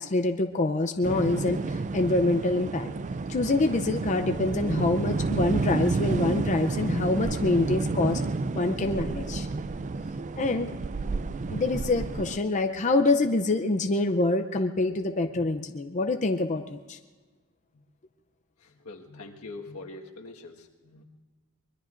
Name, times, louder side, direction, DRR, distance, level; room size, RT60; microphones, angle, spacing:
voice 1, 0.0-2.9 3.3-8.2 8.5-9.5 10.4-10.7 11.5-17.0, left 2 dB, 35° left, 6 dB, 0.6 m, -26 dB
sound 1, 1.0-12.4, right 3 dB, 35° right, 0.4 m, -30 dB
voice 2, 18.6-21.0, left 3 dB, 85° left, 1 dB, 1.6 m, -43 dB
24.0 x 21.5 x 2.6 m, 1.4 s
head